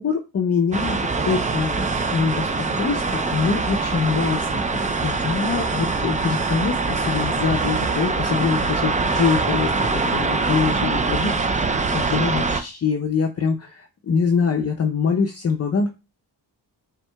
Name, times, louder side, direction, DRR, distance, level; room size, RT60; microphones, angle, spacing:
voice 1, 0.0-15.9, left 5 dB, 35° left, 2 dB, 0.6 m, -24 dB
sound 1, 0.7-12.6, right 3 dB, 20° right, 0.4 m, -23 dB
4.3 x 3.6 x 2.2 m, 0.29 s
supercardioid pair, 50°, 43 cm